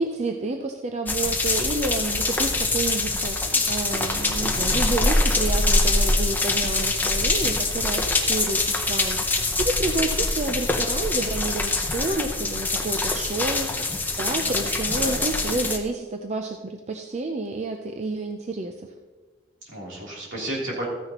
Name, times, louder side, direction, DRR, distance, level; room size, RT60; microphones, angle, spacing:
voice 1, 0.0-18.9, right 2 dB, 35° right, 4 dB, 0.5 m, -30 dB
sound 1, 1.1-15.8, left 2 dB, 10° left, 0.7 m, -24 dB
voice 2, 14.4-15.2 19.6-20.9, right 1 dB, 65° right, -4 dB, 3.3 m, -33 dB
14.0 x 9.7 x 3.0 m, 1.4 s
head